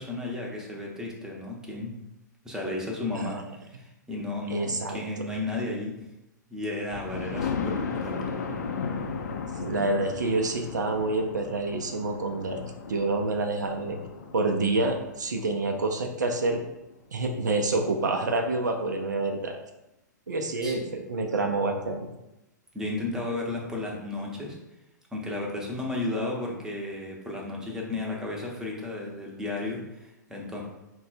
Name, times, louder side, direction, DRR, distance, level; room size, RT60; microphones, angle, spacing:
voice 1, 0.0-1.9 2.4-3.4 3.6-5.9 6.5-8.2 20.6-20.8 22.7-24.6 25.1-30.6, left 2 dB, 5° right, -2 dB, 0.8 m, -33 dB
voice 2, 4.5-5.3 9.6-12.6 12.9-14.0 14.3-16.6 17.1-19.6 20.3-22.1, right 2 dB, 70° right, 4 dB, 0.5 m, -27 dB
Thunder, 6.9-16.7 17.2-17.3 17.7-17.8 18.1-18.2, left 5 dB, 60° left, 0.5 m, -36 dB
4.1 x 2.2 x 4.0 m, 0.93 s
figure-of-eight pair, 110°, 10 cm